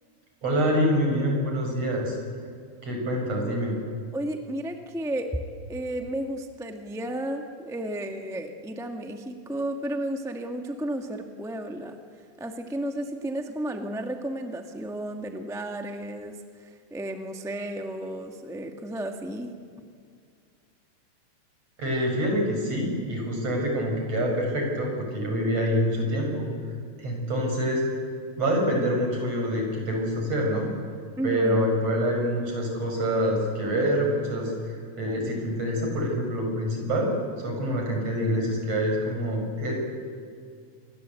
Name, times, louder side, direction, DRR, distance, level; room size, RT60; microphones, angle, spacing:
voice 1, 0.4-2.2 2.8-3.8 21.8-26.5 27.0-27.8 28.4-30.7 31.2-37.1 37.4-39.7, equal, 55° right, 1 dB, 6.9 m, -26 dB
voice 2, 4.1-5.3 5.7-12.0 12.4-19.5 31.2-31.8, right 1 dB, ahead, 4 dB, 0.8 m, -33 dB
27.0 x 21.0 x 8.3 m, 2.1 s
omnidirectional pair, 3.4 m